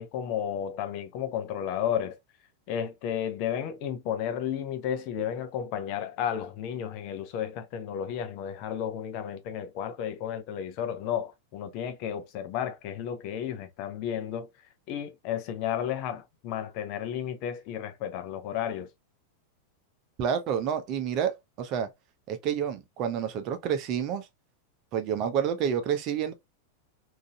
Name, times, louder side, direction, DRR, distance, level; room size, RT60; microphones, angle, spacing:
voice 1, 0.0-2.2 2.7-14.5 14.9-18.9, left 9 dB, 45° left, 0.7 m, -33 dB
voice 2, 20.2-21.9 22.3-24.3 24.9-26.3, right 8 dB, 40° right, 0.8 m, -29 dB
3.8 x 2.7 x 2.4 m
figure-of-eight pair, 90°, 0 cm